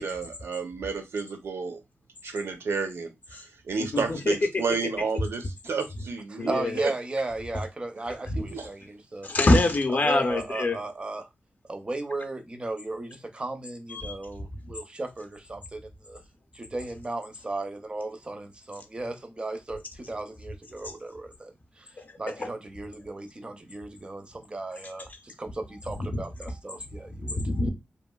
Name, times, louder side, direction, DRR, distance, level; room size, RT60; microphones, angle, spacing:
voice 1, 0.0-1.8 2.2-6.9 8.0-8.1 8.4-8.7, right 4 dB, 75° right, 0.5 m, -31 dB
voice 2, 3.9-4.3 6.4-6.7 9.2-10.8 13.9-14.1 22.4-22.5 26.1-26.2 27.2-27.7, left 2 dB, 45° left, 0.5 m, -24 dB
voice 3, 6.3-9.3 9.9-11.3 11.7-16.2 16.5-21.9 22.2-27.4, right 2 dB, 25° right, 0.4 m, -36 dB
2.9 x 2.5 x 2.2 m
wide cardioid pair, 135°, 4 cm